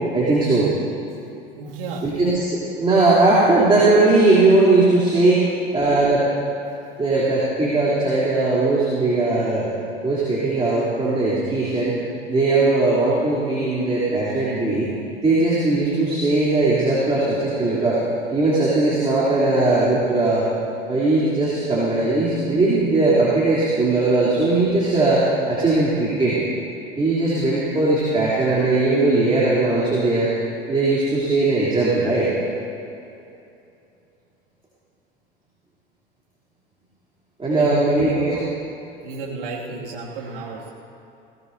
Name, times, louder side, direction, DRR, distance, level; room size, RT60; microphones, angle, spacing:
voice 1, 0.1-0.7 2.0-5.4 5.7-6.2 7.0-9.7 10.0-12.0 12.3-14.9 15.2-18.0 18.3-20.4 20.9-26.4 27.0-30.3 30.7-32.3 37.4-38.4, right 2 dB, 20° right, -8 dB, 3.3 m, -19 dB
voice 2, 1.5-2.1 5.6-5.8 37.5-38.6 39.0-40.7, right 4 dB, 70° right, -3 dB, 2.4 m, -32 dB
19.5 x 17.5 x 2.7 m, 2.8 s
figure-of-eight pair, 70°, 29 cm